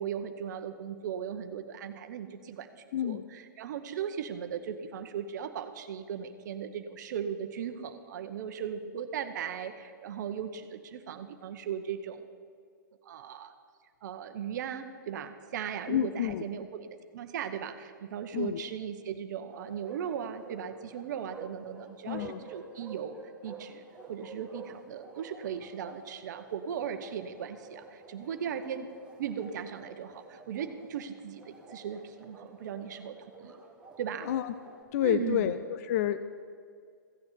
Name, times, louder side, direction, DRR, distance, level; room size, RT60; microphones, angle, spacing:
voice 1, 0.0-12.2 13.0-13.5 14.0-23.2 23.4-23.8 24.1-28.9 29.2-33.6 34.0-34.3 35.0-35.6, right 8 dB, 60° right, 8 dB, 0.9 m, -37 dB
voice 2, 2.9-3.2 15.9-16.4 18.3-18.6 22.1-22.4 34.2-34.5 34.9-35.6 35.8-36.2, left 12 dB, 45° left, 12 dB, 0.5 m, -29 dB
Bark, 19.5-34.8, right 4 dB, 10° right, 1.6 m, -50 dB
15.5 x 7.1 x 8.0 m, 2.2 s
hypercardioid pair, 140°, 11 cm